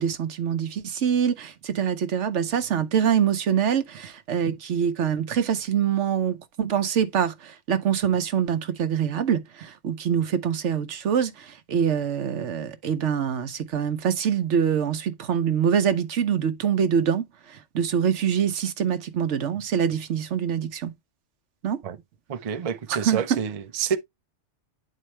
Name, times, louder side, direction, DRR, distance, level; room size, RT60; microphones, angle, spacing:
voice 1, 0.0-20.9 21.6-21.8 22.9-23.4, right 8 dB, 75° right, 1.1 m, -25 dB
voice 2, 22.3-24.0, right 7 dB, 40° right, 0.6 m, -28 dB
9.3 x 4.2 x 3.2 m
omnidirectional pair, 1.2 m